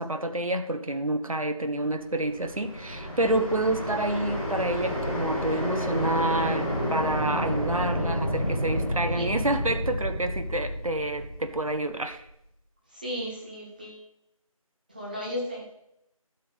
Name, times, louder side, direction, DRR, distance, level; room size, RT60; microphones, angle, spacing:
voice 1, 0.0-12.2, right 1 dB, 70° right, 8 dB, 1.0 m, -28 dB
sound 1, 2.1-12.1, equal, 15° left, 4.0 m, -30 dB
voice 2, 12.9-14.0 14.9-15.7, left 1 dB, 15° right, -4 dB, 1.3 m, -35 dB
12.0 x 7.2 x 3.4 m, 0.79 s
figure-of-eight pair, 170°, 18 cm